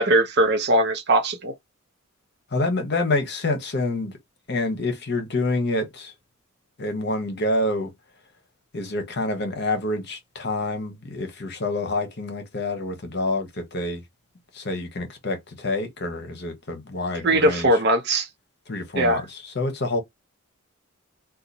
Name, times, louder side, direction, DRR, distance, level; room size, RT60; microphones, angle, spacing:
voice 1, 0.0-1.5 17.2-18.3 19.0-19.2, right 1 dB, 50° right, 0.7 m, -20 dB
voice 2, 2.5-4.2 4.5-6.1 6.8-7.9 8.7-14.0 14.5-17.8 18.7-20.0, left 2 dB, 50° left, 0.9 m, -27 dB
2.9 x 2.3 x 3.9 m
head